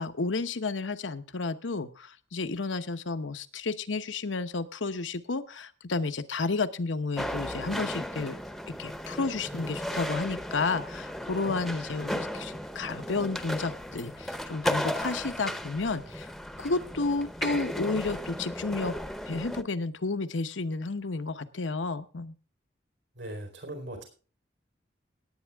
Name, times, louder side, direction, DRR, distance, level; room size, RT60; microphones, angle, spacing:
voice 1, 0.0-8.4 8.7-16.3 16.6-19.0 19.2-22.3, left 3 dB, 90° left, 11 dB, 0.9 m, -31 dB
sound 1, 7.2-19.6, equal, ahead, 0.7 m, -35 dB
voice 2, 23.2-24.0, right 1 dB, 80° right, 4 dB, 4.4 m, -39 dB
18.0 x 9.0 x 3.5 m, 0.36 s
head